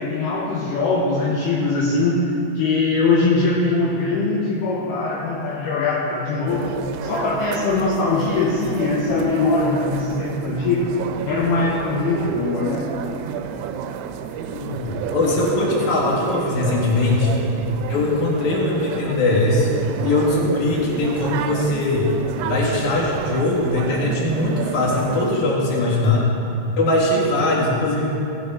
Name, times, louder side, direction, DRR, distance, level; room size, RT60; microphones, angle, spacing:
voice 1, 0.0-6.7 7.0-10.9 11.3-12.9, left 3 dB, 75° left, -3 dB, 2.5 m, -21 dB
sound 1, 6.5-25.4, right 8 dB, 85° right, 3.1 m, -31 dB
voice 2, 14.5-17.4 17.9-22.1 22.4-26.2 26.8-28.1, left 2 dB, 50° left, -3 dB, 2.5 m, -20 dB
17.5 x 10.5 x 3.8 m, 2.9 s
omnidirectional pair, 5.7 m